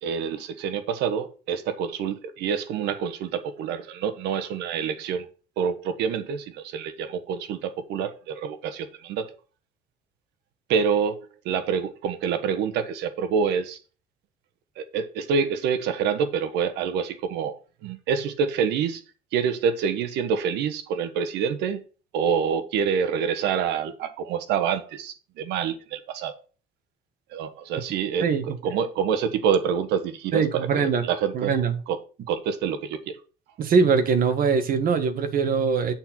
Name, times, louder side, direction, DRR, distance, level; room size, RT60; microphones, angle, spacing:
voice 1, 0.0-5.3 5.6-9.3 10.7-13.8 14.8-19.0 19.3-21.8 22.1-26.4 27.3-28.3 28.6-31.5 31.9-32.0 32.3-33.2, right 7 dB, 85° right, 1.3 m, -27 dB
voice 2, 30.3-31.1 31.3-31.8 33.6-35.9, right 5 dB, 55° right, 1.5 m, -22 dB
8.6 x 4.5 x 6.0 m
cardioid pair, 110°, 17 cm